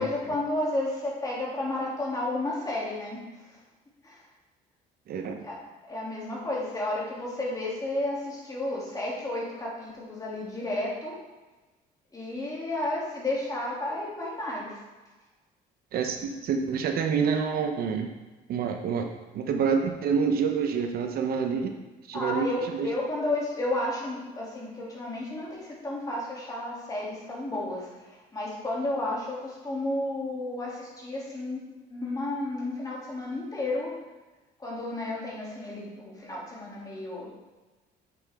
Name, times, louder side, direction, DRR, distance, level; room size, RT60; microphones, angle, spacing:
voice 1, 0.0-3.6 4.0-4.2 5.4-11.2 12.1-14.7 22.1-31.6 31.9-33.9 34.6-37.3, left 2 dB, 20° left, -5 dB, 2.7 m, -32 dB
voice 2, 5.1-5.4 15.9-18.1 18.5-19.1 19.3-21.7 22.1-22.9, right 6 dB, 65° right, 4 dB, 0.8 m, -27 dB
7.7 x 6.6 x 3.6 m, 1.2 s
cardioid pair, 110°, 17 cm